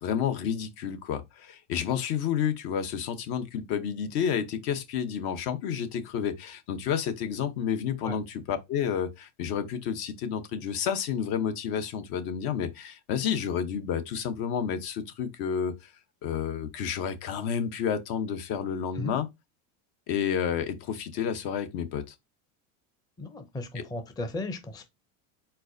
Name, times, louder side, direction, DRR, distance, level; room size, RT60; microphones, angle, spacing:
voice 1, 0.0-15.9 16.2-19.3 20.1-22.1 23.7-23.9, left 8 dB, 60° left, 0.9 m, -30 dB
voice 2, 23.2-24.8, left 2 dB, 10° left, 0.5 m, -35 dB
4.5 x 4.2 x 2.6 m
supercardioid pair, 125°, 42 cm